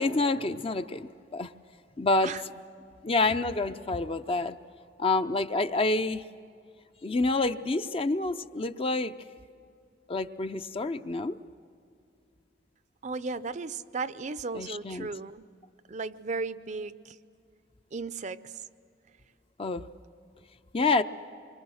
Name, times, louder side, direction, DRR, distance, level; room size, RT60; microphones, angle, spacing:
voice 1, 0.0-1.5 2.0-2.3 3.0-4.6 5.0-6.2 7.0-9.1 10.1-11.4 14.5-15.1 19.6-19.8 20.7-21.0, left 3 dB, 35° left, 10 dB, 0.6 m, -27 dB
voice 2, 13.0-15.4 15.9-17.2 17.9-18.7, right 4 dB, 45° right, 14 dB, 0.6 m, -35 dB
26.5 x 24.5 x 6.4 m, 2.3 s
head